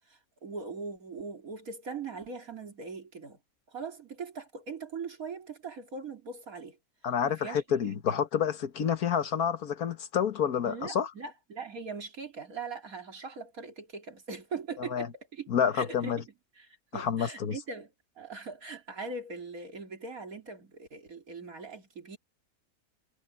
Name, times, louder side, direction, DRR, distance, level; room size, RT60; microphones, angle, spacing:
voice 1, 0.1-3.4 3.7-6.8 7.3-7.6 8.1-8.2 10.6-16.2 16.6-17.9 18.2-22.2, right 4 dB, 75° right, 3.3 m, -41 dB
voice 2, 7.0-11.1 14.9-15.1 15.5-16.2 16.9-17.6, left 8 dB, 90° left, 1.8 m, -28 dB
omnidirectional pair, 1.5 m